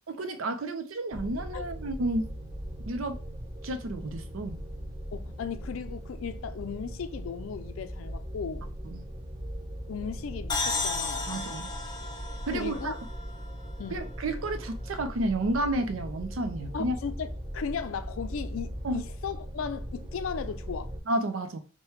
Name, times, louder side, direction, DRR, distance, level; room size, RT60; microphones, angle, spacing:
voice 1, 0.1-2.3 2.9-3.2 3.6-4.6 8.8-9.1 11.3-11.7 12.5-13.0 13.9-17.0 18.8-19.0 21.1-21.6, right 1 dB, 80° right, 0.6 m, -31 dB
sound 1, 1.1-21.0, equal, 20° right, 0.6 m, -39 dB
voice 2, 5.1-8.7 9.9-11.4 12.5-12.9 13.8-14.1 16.7-20.9, left 6 dB, 80° left, 0.4 m, -36 dB
sound 2, 10.5-14.1, left 3 dB, 20° left, 0.5 m, -34 dB
4.8 x 2.2 x 3.1 m
head